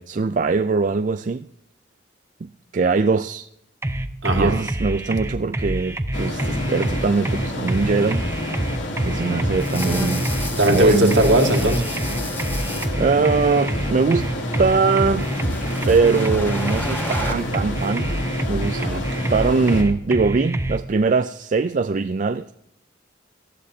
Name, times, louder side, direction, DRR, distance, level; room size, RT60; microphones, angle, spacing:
voice 1, 0.1-1.5 2.4-3.5 4.4-8.2 9.1-10.3 10.7-11.2 13.0-14.3 14.6-15.3 15.9-18.1 18.5-18.8 19.3-22.5, right 4 dB, 40° right, 0.4 m, -21 dB
sound 1, 3.8-20.8, right 1 dB, 15° right, 0.7 m, -26 dB
voice 2, 4.2-4.5 10.6-11.8 18.8-19.0, right 1 dB, 70° right, 2.2 m, -18 dB
sound 2, 6.1-19.8, left 1 dB, 70° left, 2.8 m, -29 dB
sound 3, 9.6-12.9 14.0-17.3, left 1 dB, 10° left, 1.6 m, -33 dB
18.5 x 14.0 x 2.8 m
head